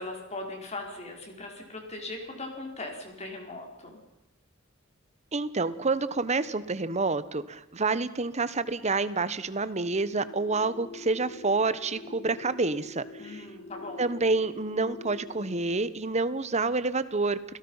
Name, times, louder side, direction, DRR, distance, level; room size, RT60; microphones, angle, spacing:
voice 1, 0.0-4.0 13.2-14.1, left 2 dB, 35° left, 2 dB, 4.8 m, -39 dB
voice 2, 5.3-13.4 14.0-17.4, right 3 dB, 35° right, 15 dB, 1.1 m, -28 dB
sound 1, 9.8-15.6, left 3 dB, 70° left, 8.0 m, -45 dB
28.5 x 17.5 x 5.7 m, 1.0 s
head